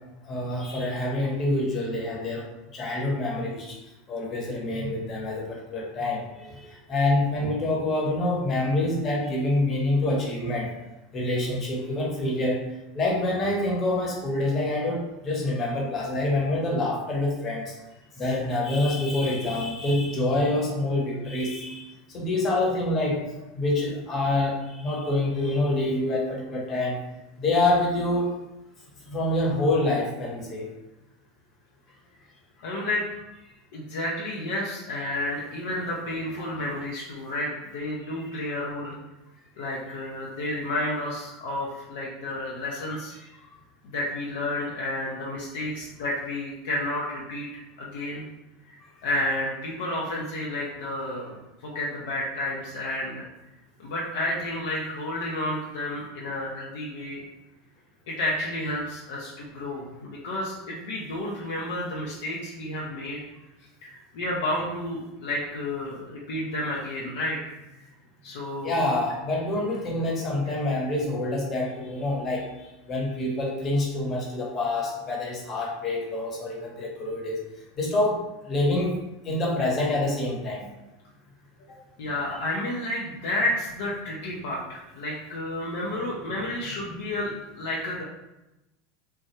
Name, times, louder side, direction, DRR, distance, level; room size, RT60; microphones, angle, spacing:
voice 1, 0.2-3.7 4.1-10.7 11.1-12.6 12.9-17.7 18.2-23.2 23.5-27.0 27.4-28.3 29.1-30.7 68.6-72.4 72.9-77.4 77.8-78.2 78.5-78.9 79.2-80.7, left 2 dB, 35° left, -2 dB, 1.0 m, -26 dB
voice 2, 32.6-33.1 33.7-39.0 39.6-43.1 43.8-48.2 48.7-48.8 49.0-53.2 53.8-57.2 58.1-63.2 63.8-67.5 68.2-68.8 82.0-88.0, left 1 dB, 65° left, -4 dB, 0.6 m, -31 dB
3.2 x 2.2 x 2.9 m, 0.97 s
hypercardioid pair, 85°, 0 cm